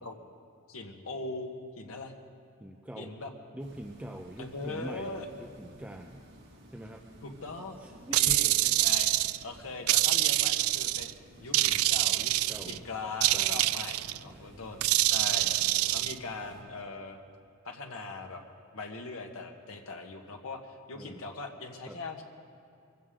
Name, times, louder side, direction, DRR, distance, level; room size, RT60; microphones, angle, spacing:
voice 1, 0.7-2.1 3.0-3.3 4.4-5.3 7.2-9.1 9.4-11.1 11.4-17.2 17.6-18.4 18.7-20.6 20.9-22.2, left 3 dB, 75° left, 3 dB, 1.5 m, -40 dB
voice 2, 2.6-3.1 3.5-6.2 6.7-7.0 7.8-8.4 11.6-11.8 12.5-12.8 13.3-13.8 14.2-14.5 15.3-16.0 20.9-21.2 21.9-22.0, right 1 dB, 5° right, 2 dB, 0.6 m, -45 dB
sound 1, 3.6-16.6, equal, 55° right, 4.8 m, -54 dB
sound 2, 8.1-9.4 9.9-11.1 11.5-12.8 13.2-14.2 14.8-16.1, right 16 dB, 80° right, 0.3 m, -26 dB
23.5 x 15.5 x 3.8 m, 2.5 s
head